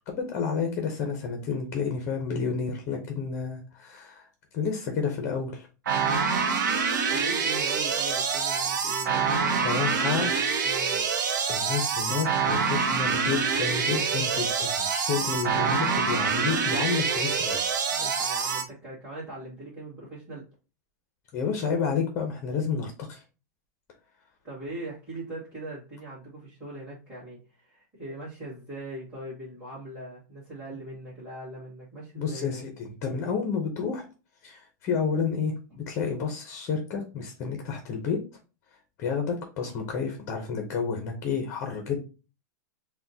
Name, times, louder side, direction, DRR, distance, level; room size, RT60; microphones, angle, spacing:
voice 1, 0.0-4.3 4.5-5.7 9.5-10.3 11.5-17.6 21.3-23.2 32.2-34.0 34.4-38.2 39.0-42.0, left 5 dB, 25° left, 4 dB, 0.6 m, -30 dB
sound 1, 5.9-18.6, right 5 dB, 85° right, 0.7 m, -26 dB
voice 2, 7.1-11.1 17.9-20.5 24.4-32.6, right 1 dB, 10° right, -9 dB, 1.9 m, -41 dB
6.0 x 2.1 x 2.7 m, 0.33 s
supercardioid pair, 175°, 10 cm